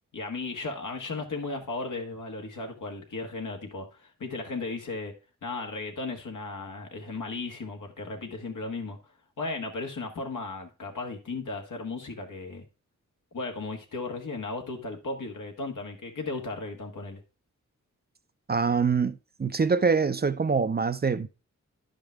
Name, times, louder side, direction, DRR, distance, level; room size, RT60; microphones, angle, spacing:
voice 1, 0.1-5.1 5.4-9.0 9.4-12.6 13.3-17.2, left 3 dB, 80° left, 1.6 m, -35 dB
voice 2, 18.5-21.3, right 5 dB, 30° right, 0.5 m, -25 dB
10.5 x 5.2 x 3.4 m
cardioid pair, 60°, 31 cm